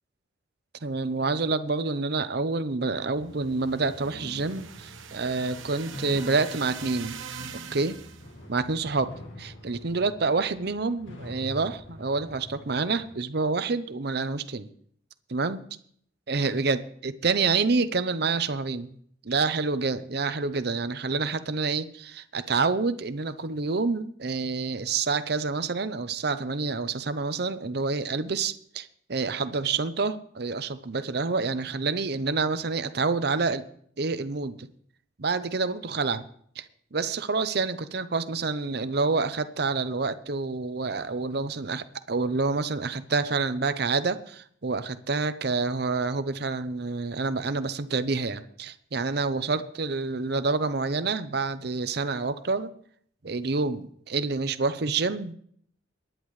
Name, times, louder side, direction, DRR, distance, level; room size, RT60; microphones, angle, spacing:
voice 1, 0.8-7.2 7.7-8.0 8.5-9.1 9.4-14.7 15.3-15.6 16.3-18.9 19.2-33.6 34.0-34.7 35.2-36.2 36.6-36.7 36.9-52.7 53.2-55.3, right 4 dB, 55° right, 12 dB, 0.7 m, -28 dB
sound 1, 3.1-13.1, left 1 dB, 75° left, 2.1 m, -45 dB
sound 2, 3.4-8.3, right 6 dB, 90° right, 1.0 m, -42 dB
23.0 x 10.5 x 3.2 m, 0.63 s
head